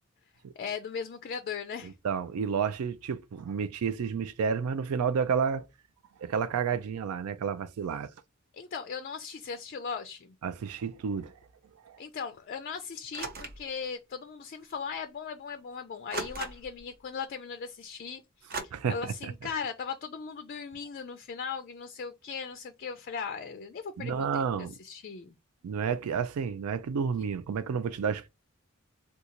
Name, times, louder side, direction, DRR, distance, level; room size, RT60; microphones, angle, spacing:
voice 1, 0.6-1.9 8.5-10.3 12.0-25.3, left 6 dB, 45° left, 0.4 m, -38 dB
voice 2, 1.8-5.7 6.2-8.1 10.4-11.3 11.9-12.0 18.7-19.3 24.0-24.7 25.6-28.3, right 6 dB, 85° right, 0.4 m, -31 dB
sound 1, 13.1-13.7 14.7-14.8 16.1-16.8 18.5-18.6, right 3 dB, 45° right, 0.7 m, -37 dB
3.8 x 2.3 x 2.8 m
head